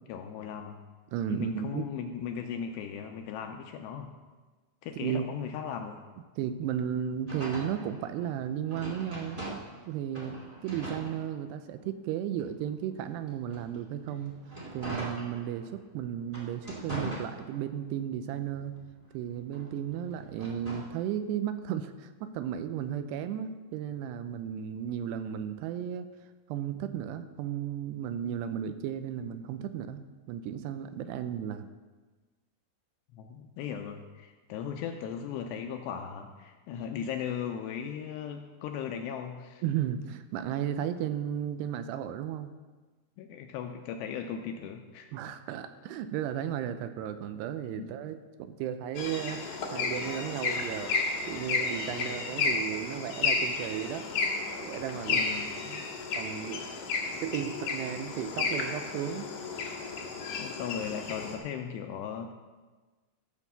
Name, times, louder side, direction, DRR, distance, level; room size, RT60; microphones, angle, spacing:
voice 1, 0.1-0.8 1.3-4.1 4.8-6.0 31.2-31.3 33.1-39.6 43.2-45.1 47.8-47.9 52.0-52.1 55.1-55.5 60.4-62.3, left 8 dB, 80° left, 5 dB, 2.6 m, -37 dB
voice 2, 1.1-1.9 5.0-5.2 6.4-14.4 14.7-18.8 19.1-26.1 26.5-31.7 39.6-42.5 45.1-54.1 54.6-55.2 55.5-55.8 56.1-56.8 57.2-59.3, right 9 dB, 80° right, 10 dB, 2.6 m, -34 dB
sound 1, 7.3-9.8 10.1-11.8 12.3-15.8 16.2-17.9 18.3-21.0, right 1 dB, 15° right, 1.5 m, -42 dB
sound 2, 49.0-61.4, left 4 dB, 55° left, 1.7 m, -32 dB
13.0 x 6.4 x 6.8 m, 1.3 s
omnidirectional pair, 5.2 m